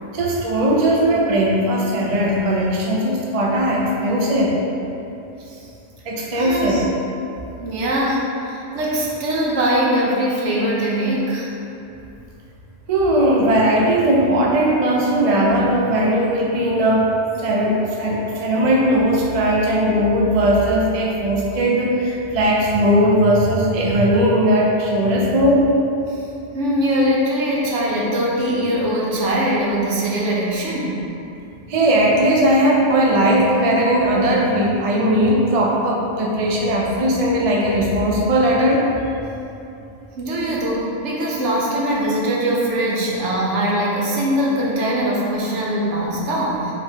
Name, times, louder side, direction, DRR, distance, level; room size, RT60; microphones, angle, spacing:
voice 1, 0.1-4.5 6.1-6.8 12.9-17.1 17.4-25.6 31.7-38.8, right 1 dB, 50° right, -3 dB, 0.4 m, -18 dB
voice 2, 6.4-6.8 7.6-11.5 26.5-31.0 40.2-46.7, right 1 dB, 70° right, -4 dB, 1.1 m, -21 dB
4.5 x 3.7 x 2.8 m, 2.8 s
omnidirectional pair, 1.3 m